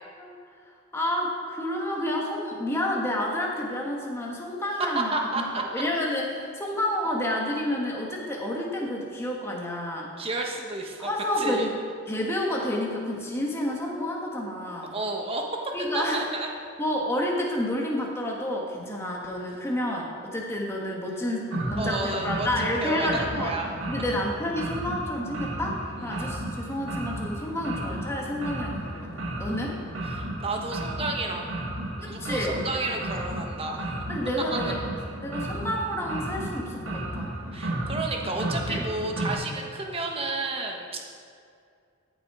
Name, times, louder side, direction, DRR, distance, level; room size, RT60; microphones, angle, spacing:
voice 1, 0.9-10.1 11.0-11.8 12.1-14.9 15.7-16.2 16.8-23.5 23.9-29.7 32.0-32.6 34.1-34.8 35.2-37.3 38.7-38.8, left 1 dB, 15° left, -2 dB, 1.6 m, -30 dB
voice 2, 4.8-5.6 10.2-11.1 11.4-11.7 14.9-15.4 15.9-16.5 21.8-23.7 26.1-26.3 30.1-31.5 32.0-33.9 34.5-34.6 37.5-41.1, right 2 dB, 30° right, 1 dB, 1.2 m, -31 dB
sound 1, 21.5-39.3, right 1 dB, 80° right, 1.8 m, -33 dB
14.0 x 7.2 x 4.9 m, 2.4 s
head